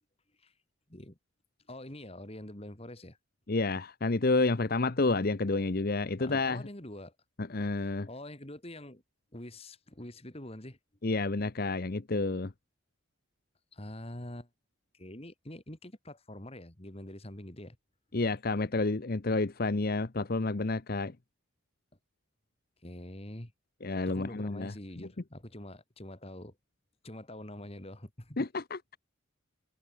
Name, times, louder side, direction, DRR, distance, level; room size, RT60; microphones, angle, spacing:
voice 1, 1.7-3.2 6.2-7.1 7.8-9.0 9.3-10.8 13.7-14.5 14.9-17.8 22.8-23.5 24.1-26.6 27.0-28.5, left 1 dB, 30° left, 2.4 m, -45 dB
voice 2, 3.5-6.6 7.4-8.1 11.0-12.5 18.1-21.2 23.8-24.7 28.4-29.0, left 3 dB, 45° left, 0.8 m, -30 dB
head